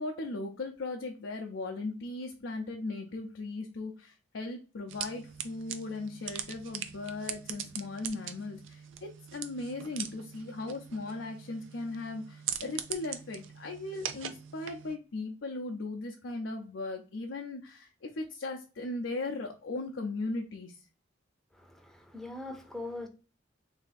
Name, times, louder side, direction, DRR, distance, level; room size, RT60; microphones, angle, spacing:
voice 1, 0.0-20.9, left 2 dB, 75° left, 0.6 m, -38 dB
sound 1, 4.9-15.0, right 9 dB, 90° right, 0.5 m, -41 dB
voice 2, 21.5-23.1, left 2 dB, ahead, 0.6 m, -41 dB
3.3 x 2.7 x 4.0 m
head